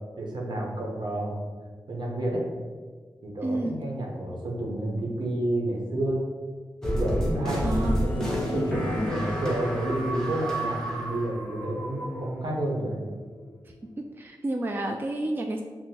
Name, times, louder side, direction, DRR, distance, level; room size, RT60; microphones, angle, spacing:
voice 1, 0.2-1.3 1.9-2.4 3.2-6.2 6.8-13.0, right 1 dB, 70° right, -2 dB, 0.9 m, -30 dB
voice 2, 3.4-3.8 7.6-8.0 8.9-9.2 14.2-15.6, right 1 dB, 25° right, 2 dB, 0.3 m, -30 dB
sound 1, 6.8-12.5, equal, 5° left, 0.9 m, -30 dB
sound 2, 7.5-11.9, left 3 dB, 25° left, 0.8 m, -39 dB
sound 3, 8.4-14.2, left 2 dB, 65° left, 0.4 m, -43 dB
6.0 x 2.1 x 2.8 m, 1.5 s
cardioid pair, 60°, 8 cm